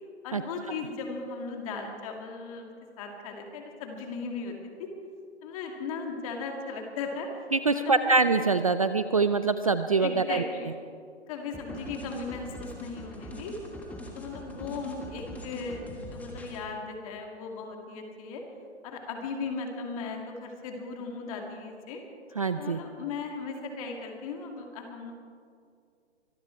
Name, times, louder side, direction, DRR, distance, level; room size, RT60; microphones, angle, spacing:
voice 1, 0.2-2.7 3.0-4.9 5.4-7.4 7.7-8.1 10.0-10.7 11.3-13.5 14.1-18.4 18.8-22.0 22.6-25.1, left 4 dB, 30° left, 2 dB, 2.5 m, -37 dB
voice 2, 7.5-10.4 22.4-22.8, right 4 dB, 30° right, 11 dB, 0.4 m, -24 dB
sound 1, 11.5-16.6, left 1 dB, 5° left, 1.4 m, -42 dB
24.5 x 13.0 x 4.6 m, 2.3 s
hypercardioid pair, 150°, 35 cm